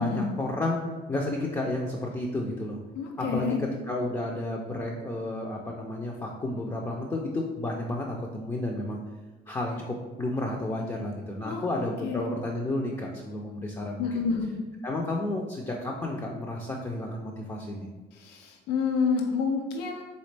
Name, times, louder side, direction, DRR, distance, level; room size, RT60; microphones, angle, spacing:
voice 1, 0.0-2.8 3.2-9.0 9.5-14.1 14.8-17.9, left 1 dB, 20° left, -2 dB, 0.5 m, -31 dB
voice 2, 2.9-3.6 11.4-12.3 14.0-14.5 18.1-20.0, left 5 dB, 85° left, 3 dB, 0.5 m, -29 dB
4.0 x 3.6 x 3.3 m, 1.2 s
cardioid pair, 110°, 17 cm